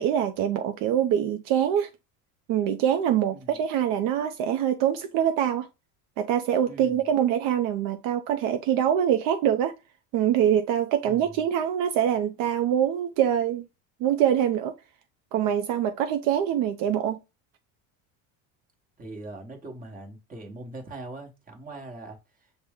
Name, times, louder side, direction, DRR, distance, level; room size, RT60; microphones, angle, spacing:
voice 1, 0.0-1.9 2.5-5.7 6.2-9.7 10.1-13.6 14.0-14.7 15.3-17.2, right 10 dB, 65° right, 0.5 m, -24 dB
voice 2, 6.7-7.0 11.0-11.4 19.0-22.2, right 2 dB, 20° right, 1.1 m, -41 dB
5.8 x 2.2 x 3.5 m
cardioid pair, 135°, 37 cm